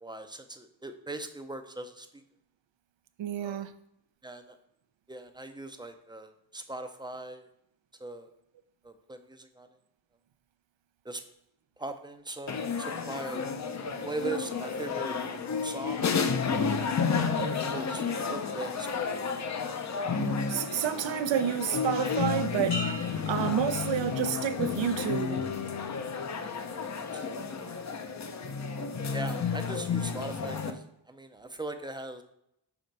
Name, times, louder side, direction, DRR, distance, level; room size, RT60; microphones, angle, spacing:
voice 1, 0.0-2.2 3.4-3.7 4.2-4.6 5.1-7.5 8.0-8.3 8.8-9.8 11.0-11.2 11.8-13.4 14.0-15.2 15.4-16.2 17.5-19.0 27.1-28.2 29.1-32.2, right 2 dB, 10° right, 0.4 m, -40 dB
voice 2, 3.2-3.7 17.4-17.5 20.2-22.8 23.1-25.4, right 9 dB, 90° right, 0.6 m, -30 dB
sound 1, 12.5-30.7, left 5 dB, 40° left, 0.5 m, -31 dB
sound 2, 22.7-24.5 25.0-25.4, equal, 70° left, 2.1 m, -41 dB
6.0 x 4.1 x 5.2 m
wide cardioid pair, 175°, 43 cm